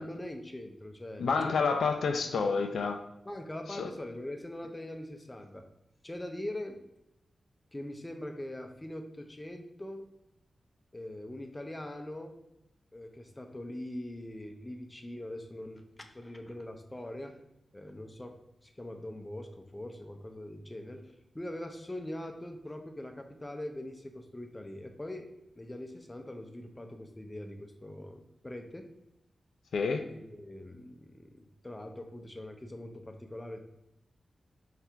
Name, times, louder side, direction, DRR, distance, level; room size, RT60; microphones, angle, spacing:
voice 1, 0.0-1.3 3.3-5.7 6.0-6.8 7.7-10.0 10.9-12.4 12.9-17.4 17.7-25.3 25.6-28.9 30.1-33.6, left 1 dB, 20° left, 4 dB, 0.5 m, -42 dB
voice 2, 1.2-3.0 3.7-3.9 29.7-30.0, left 4 dB, 85° left, 5 dB, 0.4 m, -29 dB
4.3 x 2.5 x 3.3 m, 0.87 s
cardioid pair, 75°, 0 cm